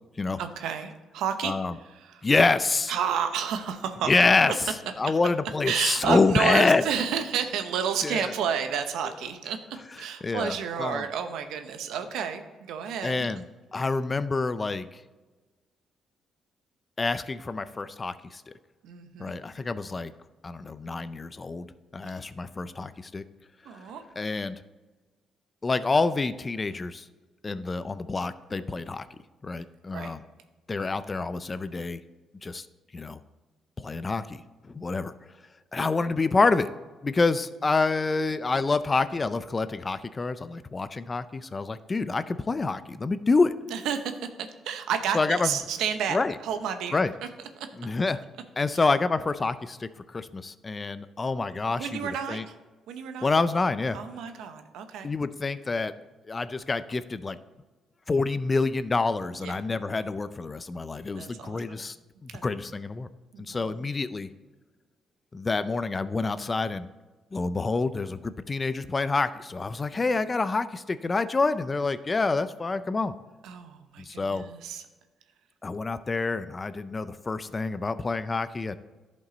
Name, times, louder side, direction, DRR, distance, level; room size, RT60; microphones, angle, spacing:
voice 1, 0.4-1.6 1.8-2.3 2.9-4.1 4.5-4.6 5.6-9.6 10.0-13.3 18.8-19.4 22.0-22.1 23.6-24.0 29.9-30.2 43.7-47.0 47.6-47.7 48.7-48.8 51.8-52.5 52.9-53.3 53.9-55.1 59.4-59.6 61.2-61.9 62.3-62.4 63.3-63.9 73.4-74.8, right 7 dB, 85° right, 8 dB, 0.8 m, -31 dB
voice 2, 2.2-2.9 4.1-4.5 5.0-6.8 8.0-8.3 10.2-10.5 10.8-11.0 13.0-13.4 13.7-14.9 17.0-18.5 19.2-20.1 20.4-21.7 21.9-23.2 24.2-24.6 25.6-27.1 27.4-29.1 29.4-30.2 30.7-32.0 32.4-32.7 32.9-33.2 33.8-34.4 34.7-35.1 35.7-36.7 37.0-43.5 45.1-45.5 46.1-46.3 46.9-47.1 47.8-48.2 48.6-52.4 53.2-54.0 55.0-55.9 56.3-57.4 58.1-62.0 62.2-63.1 63.5-64.3 65.3-66.9 67.3-73.1 74.0-74.4 75.6-78.8, left 3 dB, 30° left, 14 dB, 0.4 m, -27 dB
11.5 x 5.3 x 4.0 m, 1.2 s
cardioid pair, 90°, 0 cm